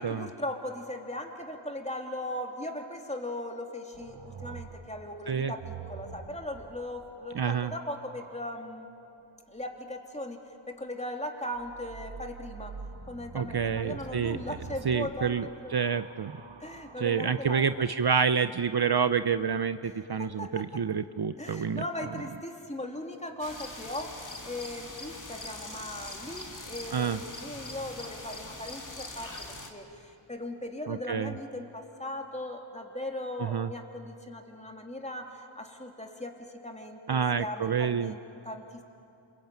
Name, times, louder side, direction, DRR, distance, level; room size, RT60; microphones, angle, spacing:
voice 1, 0.0-8.9 9.5-10.4 10.7-12.7 13.1-15.9 16.6-17.6 19.8-20.8 21.4-24.2 24.4-38.8, left 1 dB, 15° left, 2 dB, 3.1 m, -38 dB
sound 1, 3.9-8.5 11.5-17.6 18.6-19.2, right 5 dB, 70° right, 1.3 m, -46 dB
voice 2, 7.3-7.7 13.3-14.4 14.8-16.3 17.0-21.8 26.9-27.2 30.9-31.3 33.4-33.7 37.1-38.1, right 6 dB, 50° right, 11 dB, 0.7 m, -28 dB
sound 2, 23.4-29.7, left 2 dB, 40° left, 3.0 m, -42 dB
27.5 x 22.0 x 9.1 m, 2.6 s
wide cardioid pair, 45°, 49 cm